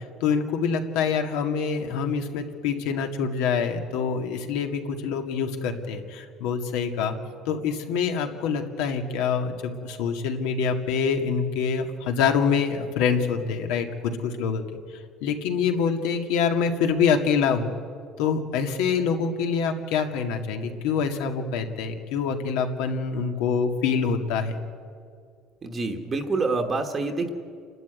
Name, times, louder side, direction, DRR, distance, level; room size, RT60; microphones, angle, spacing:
voice 1, 0.0-7.2 7.5-14.8 15.2-17.8 18.2-24.6, left 6 dB, 85° left, 5 dB, 2.0 m, -25 dB
voice 2, 25.6-27.3, right 3 dB, 20° right, 4 dB, 1.1 m, -27 dB
28.5 x 12.0 x 9.5 m, 2.2 s
cardioid pair, 165°, 0 cm